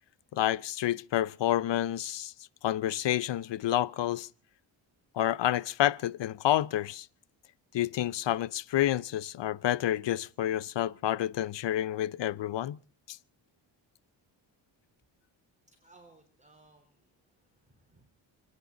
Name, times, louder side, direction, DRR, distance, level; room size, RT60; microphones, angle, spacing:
voice 1, 0.3-2.3 2.6-4.3 5.2-7.1 7.7-12.8 13.1-13.2, left 12 dB, 60° left, 0.7 m, -29 dB
voice 2, 15.7-18.1, right 2 dB, 15° right, 3.6 m, -61 dB
29.5 x 10.0 x 3.9 m
cardioid pair, 75°, 48 cm